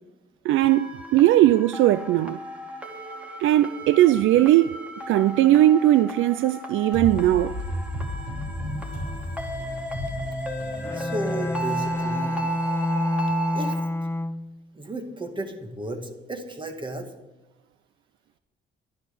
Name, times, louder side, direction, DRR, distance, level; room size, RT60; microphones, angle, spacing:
voice 1, 0.4-2.4 3.4-4.8 5.1-7.6, right 14 dB, 80° right, 0.4 m, -19 dB
sound 1, 0.6-13.7, right 1 dB, 5° right, 2.7 m, -35 dB
sound 2, 6.9-12.6, equal, 65° right, 4.8 m, -33 dB
Bowed string instrument, 10.8-14.6, left 1 dB, 10° left, 0.5 m, -28 dB
voice 2, 10.9-12.4 13.5-13.8 14.7-17.1, right 1 dB, 25° right, 2.2 m, -33 dB
12.0 x 10.5 x 7.0 m
cardioid pair, 90°, 20 cm